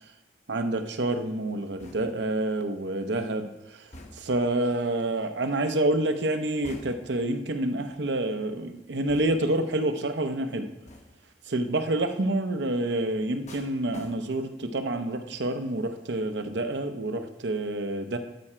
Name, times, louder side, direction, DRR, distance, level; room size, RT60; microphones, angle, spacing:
voice 1, 0.5-3.8 4.2-10.7 11.5-18.2, right 1 dB, 75° right, 8 dB, 0.7 m, -28 dB
sound 1, 1.8-2.4 3.9-4.5 6.6-7.3 9.1-9.6 10.9-11.3 13.5-14.6 15.0-15.3, left 1 dB, 40° left, 0.9 m, -47 dB
12.0 x 4.9 x 4.4 m, 0.92 s
head